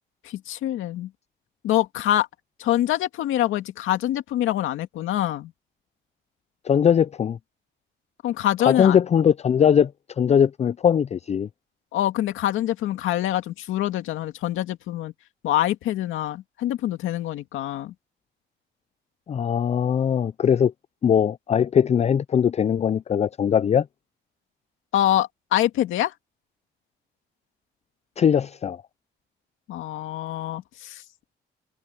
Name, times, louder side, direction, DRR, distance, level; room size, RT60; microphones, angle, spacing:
voice 1, 0.2-1.1 1.6-2.3 2.6-5.5 8.2-9.0 11.9-15.1 15.4-17.9 24.9-26.1 29.7-31.0, left 13 dB, 85° left, 2.2 m, -25 dB
voice 2, 6.7-7.4 8.6-9.9 10.2-11.5 19.3-20.7 21.0-23.9 28.2-28.8, left 8 dB, 35° left, 0.4 m, -20 dB
cardioid pair, 90°, 20 cm